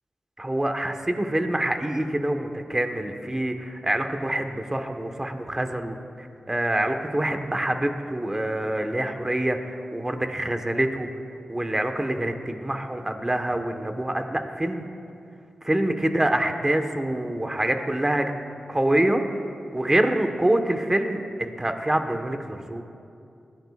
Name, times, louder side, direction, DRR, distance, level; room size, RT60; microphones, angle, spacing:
voice 1, 0.4-11.1 11.5-14.8 15.6-18.3 18.7-19.2 19.7-22.8, right 1 dB, 20° right, 5 dB, 1.3 m, -26 dB
20.0 x 15.0 x 2.5 m, 2.5 s
cardioid pair, 45°, 2 cm